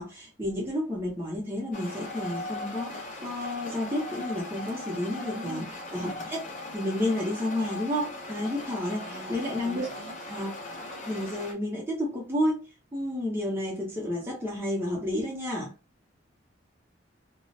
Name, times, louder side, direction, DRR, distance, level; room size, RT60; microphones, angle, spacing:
voice 1, 0.0-5.7 5.9-6.4 6.7-9.9 10.3-10.5 11.1-12.6 12.9-15.7, left 1 dB, 10° right, 0.7 m, -31 dB
sound 1, 1.7-11.5, left 2 dB, 40° left, 0.6 m, -39 dB
voice 2, 5.3-5.7 9.0-10.1, right 2 dB, 65° right, 0.4 m, -43 dB
2.4 x 2.1 x 2.5 m
head